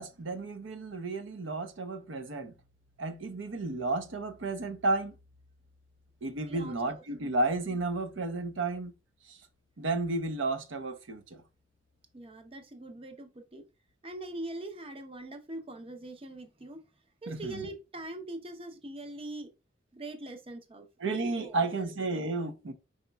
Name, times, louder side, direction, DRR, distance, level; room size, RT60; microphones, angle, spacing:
voice 1, 0.0-2.5 3.0-5.1 6.2-8.9 9.8-11.2 17.3-17.6 21.0-22.7, right 2 dB, 80° right, 0.7 m, -32 dB
voice 2, 6.4-7.0 12.1-13.6 14.0-16.8 17.2-19.5 19.9-20.9 21.4-21.9, right 2 dB, 30° right, 0.7 m, -42 dB
5.0 x 4.0 x 2.2 m
head